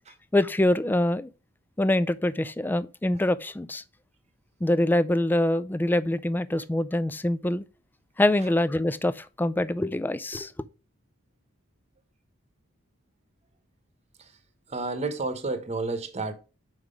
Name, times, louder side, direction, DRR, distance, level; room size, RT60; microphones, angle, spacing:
voice 1, 0.3-1.3 1.8-3.8 4.6-7.6 8.2-10.5, left 1 dB, 10° left, 0.3 m, -24 dB
voice 2, 14.7-16.3, right 3 dB, 30° right, 1.0 m, -30 dB
5.7 x 4.7 x 5.0 m
head